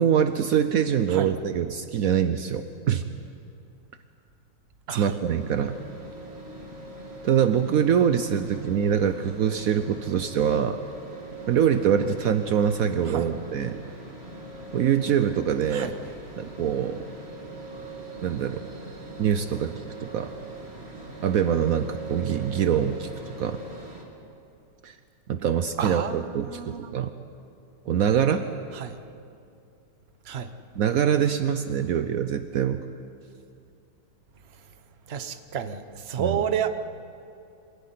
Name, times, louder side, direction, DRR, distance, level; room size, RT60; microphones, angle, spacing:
voice 1, 0.0-3.0 4.9-5.8 7.2-10.8 11.5-13.8 14.7-16.0 16.4-17.0 18.2-18.6 19.2-19.7 20.0-20.3 21.2-23.1 23.4-23.6 24.8-25.0 25.3-27.1 27.9-28.5 30.8-32.8 36.2-36.4, right 8 dB, 80° right, 9 dB, 0.7 m, -24 dB
voice 2, 4.9-5.2 13.1-13.3 15.7-15.9 25.8-26.9 28.7-29.0 30.3-30.5 35.1-36.7, right 8 dB, 50° right, 9 dB, 0.8 m, -30 dB
sound 1, 5.2-24.0, right 2 dB, 30° right, 2.7 m, -41 dB
25.0 x 16.5 x 9.4 m, 2.6 s
omnidirectional pair, 2.4 m